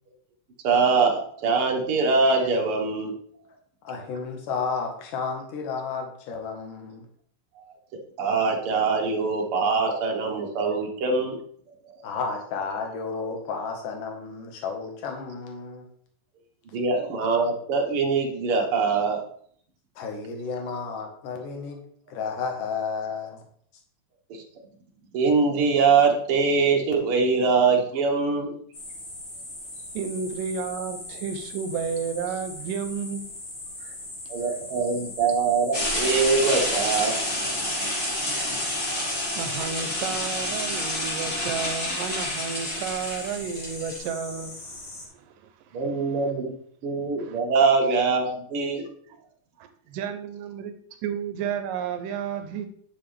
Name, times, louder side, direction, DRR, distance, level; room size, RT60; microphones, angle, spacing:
voice 1, 0.6-3.1 8.2-11.4 12.0-12.1 16.7-19.2 24.3-24.4 25.1-28.5 34.3-37.1 39.0-39.1 45.7-46.5 46.8-48.8, right 4 dB, 50° right, 1 dB, 1.9 m, -23 dB
voice 2, 3.8-7.1 12.0-15.9 20.0-21.8 22.1-23.4, left 5 dB, 70° left, 2 dB, 3.0 m, -32 dB
sound 1, 28.7-45.1, left 2 dB, 40° left, 2.6 m, -40 dB
voice 3, 29.9-33.3 33.8-34.0 38.6-38.7 39.1-44.8 45.1-45.3 45.7-45.8 47.2-47.4 49.6-50.7 51.0-52.7, right 7 dB, 80° right, 8 dB, 2.3 m, -32 dB
sound 2, 35.7-44.0, left 1 dB, 25° left, 2.9 m, -29 dB
10.0 x 6.8 x 3.4 m, 0.62 s
omnidirectional pair, 3.9 m